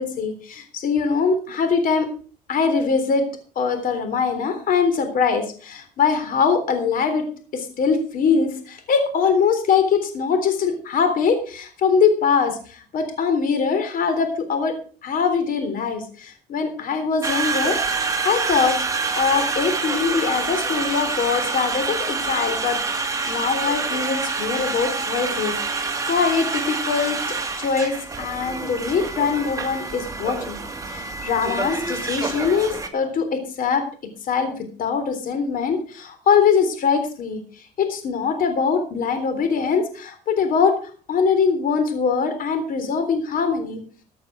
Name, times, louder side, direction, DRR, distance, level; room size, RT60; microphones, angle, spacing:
voice 1, 0.0-2.1 2.5-3.2 3.6-7.3 7.5-14.7 15.0-17.8 18.2-18.8 19.1-27.2 27.6-30.6 30.9-33.8 34.3-34.5 34.8-37.4 37.8-40.7 41.1-43.8, left 5 dB, 55° left, 8 dB, 3.6 m, -22 dB
Conversation, 17.2-32.9, right 4 dB, 20° right, 2.3 m, -27 dB
15.0 x 8.7 x 5.9 m, 0.40 s
cardioid pair, 110°, 17 cm